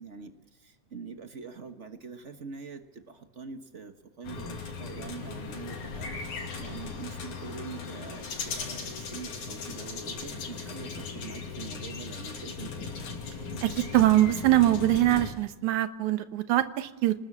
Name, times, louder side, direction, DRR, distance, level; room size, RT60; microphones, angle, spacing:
voice 1, 0.0-6.1 6.6-12.9, right 5 dB, 50° right, 7 dB, 0.8 m, -44 dB
sound 1, 4.2-15.3, left 5 dB, 90° left, 4.2 m, -38 dB
voice 2, 13.6-17.1, right 15 dB, 85° right, 11 dB, 2.5 m, -23 dB
26.5 x 20.0 x 7.3 m, 1.1 s
omnidirectional pair, 3.3 m